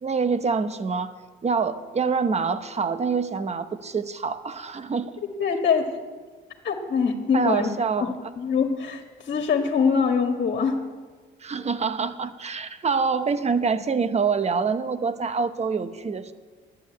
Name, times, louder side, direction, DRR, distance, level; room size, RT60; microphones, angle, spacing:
voice 1, 0.0-1.1 1.4-5.2 7.3-8.3 11.4-16.3, right 5 dB, 35° right, 11 dB, 1.0 m, -26 dB
voice 2, 5.4-6.0 6.6-7.7 8.0-10.8, left 6 dB, 60° left, 2 dB, 1.7 m, -24 dB
11.5 x 10.0 x 8.5 m, 1.4 s
cardioid pair, 90°, 20 cm